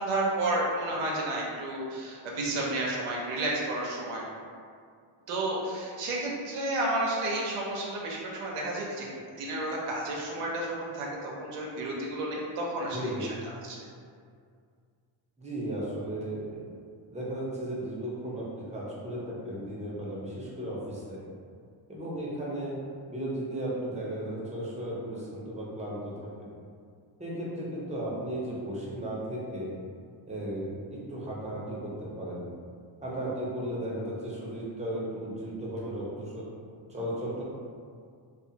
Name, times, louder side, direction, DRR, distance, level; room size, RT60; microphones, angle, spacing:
voice 1, 0.0-4.2 5.3-9.0 9.4-13.8, right 1 dB, 85° right, -3 dB, 0.7 m, -31 dB
voice 2, 12.9-13.3 15.4-16.6 17.1-21.2 21.9-22.8 23.1-26.5 27.2-29.7 30.3-32.5 33.0-36.4 36.9-37.4, right 1 dB, 15° right, -6 dB, 0.8 m, -35 dB
2.4 x 2.4 x 2.8 m, 2.2 s
cardioid pair, 70°, 50 cm